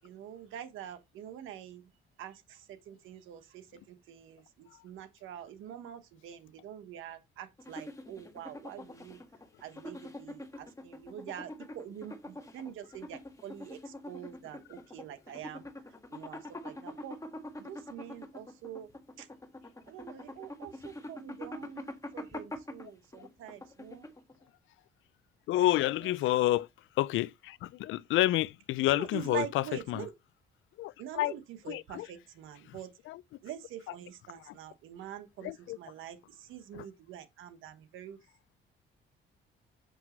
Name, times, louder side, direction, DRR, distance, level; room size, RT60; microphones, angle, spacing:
voice 1, 0.0-1.8 2.2-2.6 2.9-3.6 3.9-9.2 9.6-15.7 16.1-17.2 17.6-18.9 19.2-19.3 19.9-24.0 28.9-30.1 31.0-31.4 31.6-32.9 33.4-36.2 36.5-38.2, right 10 dB, 90° right, 1.2 m, -45 dB
sound 1, 7.6-24.4, left 1 dB, 15° left, 1.6 m, -45 dB
voice 2, 25.5-26.7 27.0-30.1 30.8-31.3 31.6-32.1 32.7-32.8 33.1-33.2 33.9-34.0 34.4-34.6 35.4-35.8 36.7-36.9, left 15 dB, 80° left, 0.4 m, -29 dB
7.6 x 5.8 x 3.1 m
cardioid pair, 90°, 20 cm